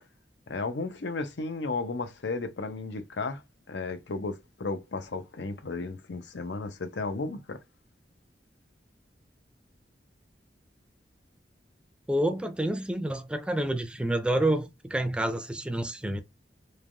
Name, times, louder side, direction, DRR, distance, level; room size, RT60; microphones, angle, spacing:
voice 1, 0.5-7.6, left 3 dB, 85° left, 0.6 m, -34 dB
voice 2, 12.1-16.2, right 1 dB, 5° right, 0.3 m, -28 dB
3.2 x 2.2 x 2.4 m
head